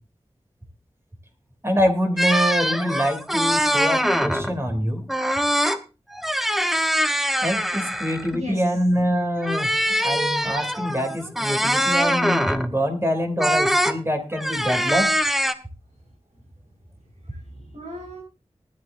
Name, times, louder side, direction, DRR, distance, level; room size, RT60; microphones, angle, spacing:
voice 1, 1.6-5.1 7.4-15.1, equal, 20° right, 5 dB, 2.9 m, -25 dB
sound 1, 2.2-4.6 5.1-5.8 6.1-8.3 9.4-12.7 13.4-14.0 14.3-15.5, equal, ahead, 1.0 m, -23 dB
voice 2, 8.0-8.8 17.2-18.2, left 1 dB, 75° right, -1 dB, 5.2 m, -37 dB
19.5 x 11.0 x 2.6 m, 0.30 s
wide cardioid pair, 70°, 12 cm